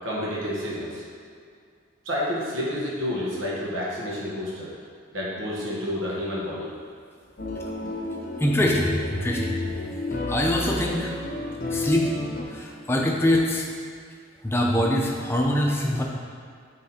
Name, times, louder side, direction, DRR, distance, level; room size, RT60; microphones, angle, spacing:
voice 1, 0.0-1.0 2.0-4.7 5.1-6.7, left 1 dB, 80° right, -5 dB, 1.7 m, -29 dB
sound 1, 7.4-12.4, left 2 dB, 45° left, 0.8 m, -31 dB
voice 2, 8.4-9.8 10.3-11.1 11.7-12.1 12.5-13.7 14.4-16.0, left 1 dB, 10° left, -1 dB, 0.6 m, -23 dB
8.3 x 3.9 x 4.3 m, 2.2 s
head